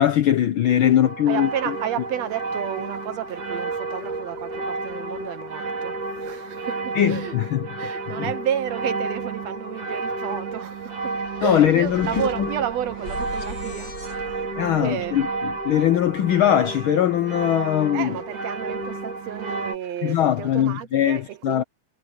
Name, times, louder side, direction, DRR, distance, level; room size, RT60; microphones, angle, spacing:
voice 1, 0.0-1.7 6.9-7.7 8.2-8.3 11.4-12.5 14.6-18.1 20.0-21.6, left 11 dB, 75° left, 1.2 m, -21 dB
sound 1, 1.0-19.8, right 3 dB, 90° right, 6.7 m, -31 dB
voice 2, 1.3-7.4 7.8-15.1 17.9-21.6, right 10 dB, 70° right, 1.9 m, -31 dB
sound 2, 10.4-16.6, left 3 dB, 40° left, 4.3 m, -43 dB
sound 3, 10.6-14.0, left 1 dB, 25° left, 4.9 m, -46 dB
omnidirectional pair, 3.4 m